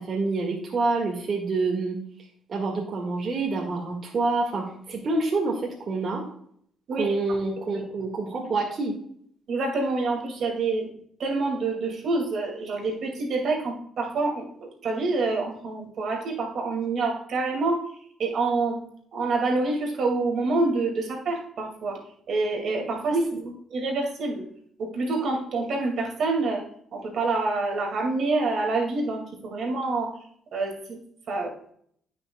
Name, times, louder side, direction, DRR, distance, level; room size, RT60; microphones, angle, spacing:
voice 1, 0.0-2.0 2.5-5.6 5.9-6.2 6.9-8.9 23.1-23.2, right 3 dB, 50° right, -1 dB, 1.8 m, -27 dB
voice 2, 9.5-10.9 11.2-17.8 18.2-18.8 19.1-22.0 22.3-23.2 23.7-24.5 24.8-26.6 26.9-30.1 30.5-31.0 31.3-31.5, right 3 dB, 65° right, 1 dB, 2.2 m, -27 dB
15.5 x 5.8 x 2.3 m, 0.66 s
cardioid pair, 90°, 0 cm